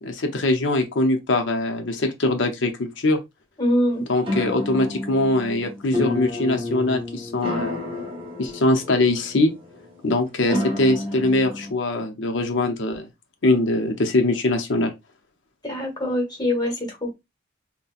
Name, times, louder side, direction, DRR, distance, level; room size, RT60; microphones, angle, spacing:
voice 1, 0.0-3.2 4.1-7.8 8.4-9.5 10.0-13.1 13.4-14.9, left 2 dB, 75° left, 0.7 m, -22 dB
voice 2, 3.6-4.0 10.5-10.7 15.6-17.1, equal, 20° left, 1.1 m, -24 dB
sound 1, 4.3-11.7, left 2 dB, 25° right, 1.1 m, -31 dB
4.1 x 2.2 x 2.4 m
head